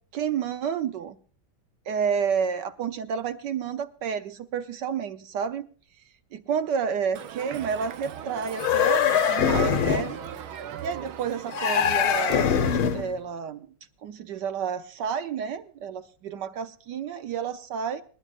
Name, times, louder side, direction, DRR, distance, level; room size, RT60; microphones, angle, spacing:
voice 1, 0.1-1.2 1.9-5.7 6.3-10.2 10.8-13.7 14.0-18.0, right 7 dB, 65° right, 10 dB, 1.2 m, -30 dB
Crowd, 7.2-12.4, right 9 dB, 90° right, 1.7 m, -37 dB
sound 1, 8.5-10.2 11.5-13.1, left 8 dB, 90° left, 1.9 m, -23 dB
26.0 x 11.5 x 2.5 m, 0.41 s
omnidirectional pair, 2.2 m